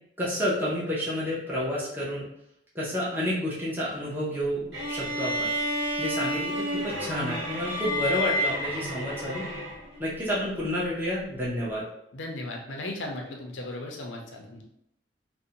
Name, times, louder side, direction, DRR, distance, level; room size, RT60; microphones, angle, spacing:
voice 1, 0.2-2.2 2.7-5.5 6.0-9.5 10.0-11.8, equal, 10° right, -7 dB, 0.6 m, -30 dB
sound 1, 4.7-10.0, equal, 60° right, 1.2 m, -30 dB
voice 2, 12.1-14.6, left 2 dB, 80° left, 1 dB, 0.5 m, -36 dB
2.5 x 2.1 x 2.8 m, 0.77 s
head